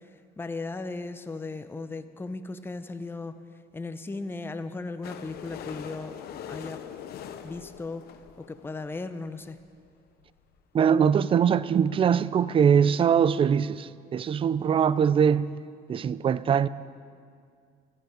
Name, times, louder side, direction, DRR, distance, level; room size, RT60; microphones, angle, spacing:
voice 1, 0.4-3.3 3.7-6.2 6.5-6.8 7.4-8.0 8.4-9.6, left 3 dB, 15° left, 0.6 m, -36 dB
sound 1, 5.0-8.9 9.6-9.7 9.8-9.9 10.1-10.2 10.6-10.7, left 9 dB, 70° left, 0.9 m, -42 dB
voice 2, 10.7-15.5 15.9-16.7, right 7 dB, 30° right, 0.4 m, -22 dB
14.5 x 12.0 x 5.1 m
cardioid pair, 110°, 17 cm